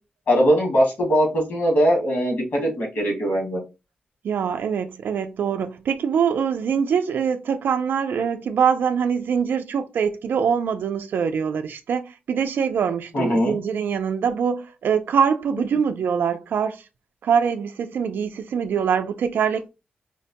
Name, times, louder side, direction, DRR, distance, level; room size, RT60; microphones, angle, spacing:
voice 1, 0.3-3.6 13.1-13.6, equal, 60° left, 1.8 m, -20 dB
voice 2, 4.2-16.8 17.2-19.7, right 7 dB, 85° right, 0.3 m, -23 dB
4.5 x 2.1 x 2.8 m
wide cardioid pair, 175°, 3 cm